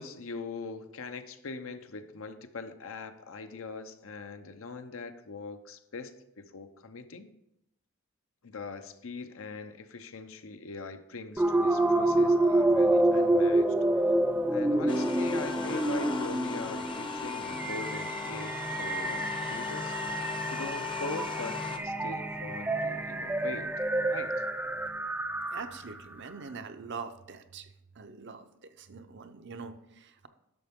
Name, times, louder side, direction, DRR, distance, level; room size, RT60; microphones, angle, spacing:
voice 1, 0.0-7.3 8.4-13.7 14.5-20.0 20.5-23.7 24.1-24.3, left 4 dB, 65° left, 8 dB, 0.7 m, -41 dB
sound 1, 11.4-25.9, right 1 dB, 10° right, 0.4 m, -28 dB
sound 2, 14.9-21.8, left 5 dB, 20° left, 0.7 m, -37 dB
voice 2, 25.5-27.7 28.0-30.3, right 5 dB, 50° right, 9 dB, 0.6 m, -43 dB
11.0 x 6.7 x 3.6 m, 0.82 s
head